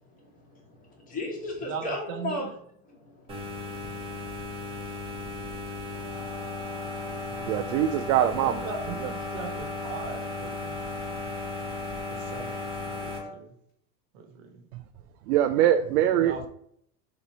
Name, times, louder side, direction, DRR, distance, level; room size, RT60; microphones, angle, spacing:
voice 1, 0.2-2.5 2.9-7.8, left 1 dB, 20° left, -1 dB, 1.1 m, -39 dB
voice 2, 1.7-2.5 8.3-10.8 12.1-13.5 14.1-14.6 16.2-16.5, right 5 dB, 60° right, 3 dB, 1.2 m, -39 dB
sound 1, 3.3-13.2, left 2 dB, 10° right, 0.9 m, -37 dB
sound 2, 5.9-13.4, left 2 dB, 35° left, 0.7 m, -39 dB
voice 3, 7.5-8.5 15.3-16.3, right 11 dB, 90° right, 8 dB, 0.5 m, -22 dB
4.0 x 3.1 x 4.1 m, 0.66 s
supercardioid pair, 160°, 45 cm